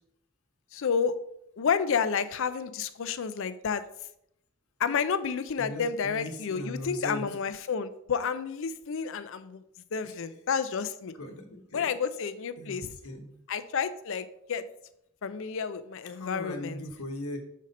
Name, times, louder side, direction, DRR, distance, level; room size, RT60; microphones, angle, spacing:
voice 1, 0.7-1.2 1.6-3.8 4.8-9.6 9.9-11.1 11.7-13.0 13.5-14.7 15.2-16.8, left 6 dB, 60° left, 13 dB, 0.5 m, -30 dB
voice 2, 5.6-7.3 10.0-10.2 11.2-11.9 12.6-12.8 13.0-13.3 16.1-17.4, left 1 dB, 85° left, 4 dB, 1.1 m, -38 dB
6.2 x 4.1 x 5.2 m, 0.78 s
head